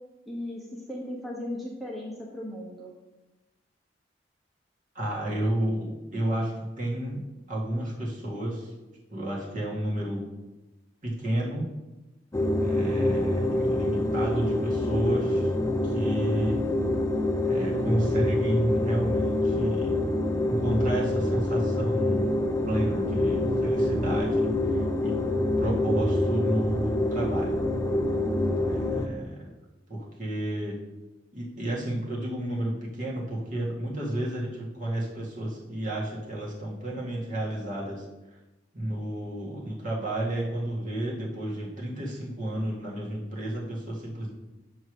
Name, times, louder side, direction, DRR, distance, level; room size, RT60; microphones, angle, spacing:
voice 1, 0.3-2.9, left 1 dB, ahead, -4 dB, 1.0 m, -37 dB
voice 2, 5.0-7.2 7.5-8.7 9.1-10.2 11.0-11.7 12.6-15.5 15.8-16.6 17.4-19.9 20.5-22.3 22.7-25.1 25.6-27.5 28.6-29.5 29.9-30.8 31.3-38.0 38.7-44.3, right 1 dB, 45° right, -5 dB, 1.9 m, -31 dB
sound 1, 12.3-29.1, left 1 dB, 15° left, 0.4 m, -26 dB
7.1 x 3.3 x 6.2 m, 1.1 s
head